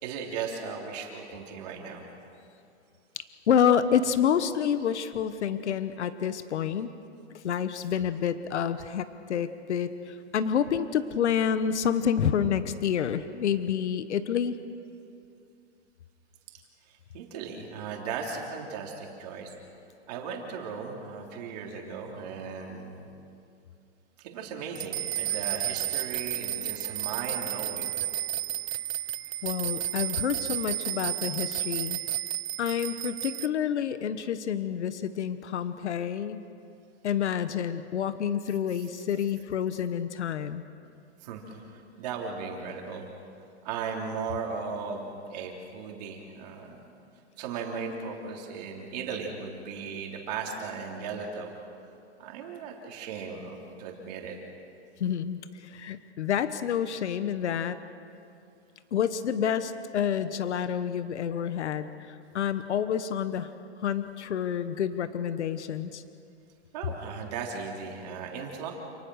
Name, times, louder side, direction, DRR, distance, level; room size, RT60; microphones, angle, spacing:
voice 1, 0.0-2.0 16.9-19.5 20.1-23.1 24.2-27.9 41.2-43.1 43.6-46.9 47.4-51.5 52.2-54.4 66.7-68.7, right 5 dB, 35° right, 0 dB, 3.6 m, -37 dB
voice 2, 3.2-6.9 7.4-14.6 29.4-32.0 32.6-36.5 37.0-40.6 55.0-57.8 58.9-63.5 63.8-66.0, left 8 dB, 75° left, 12 dB, 1.2 m, -28 dB
sound 1, 24.8-33.5, right 12 dB, 60° right, 0.7 m, -32 dB
29.0 x 19.0 x 6.4 m, 2.5 s
hypercardioid pair, 170°, 34 cm